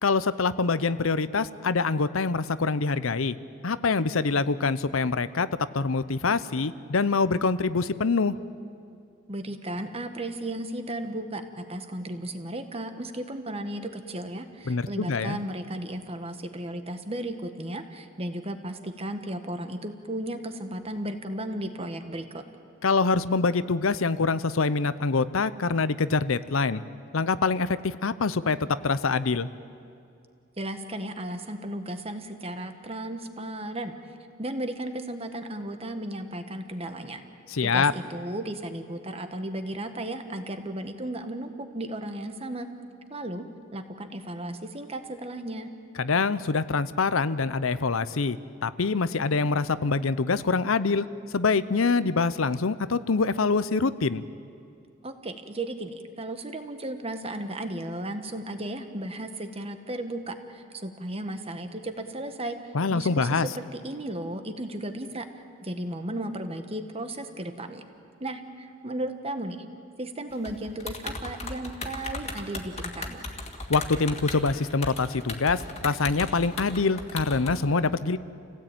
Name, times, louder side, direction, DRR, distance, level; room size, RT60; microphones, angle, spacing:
voice 1, 0.0-3.4 3.6-5.5 5.7-8.3 14.7-15.4 22.8-26.8 27.1-28.6 28.8-29.5 37.5-37.9 46.0-51.1 51.3-54.2 62.7-63.5 73.7-78.2, left 4 dB, 90° left, 15 dB, 0.7 m, -25 dB
voice 2, 9.3-22.4 30.6-33.9 34.4-37.2 37.6-42.7 43.1-43.5 43.7-45.7 55.0-62.6 62.9-65.3 65.6-67.8 68.2-69.6 70.0-73.3, right 1 dB, 30° right, 7 dB, 1.5 m, -35 dB
sound 1, 70.3-77.5, left 3 dB, 30° left, 2.3 m, -36 dB
28.5 x 17.0 x 9.1 m, 2.4 s
head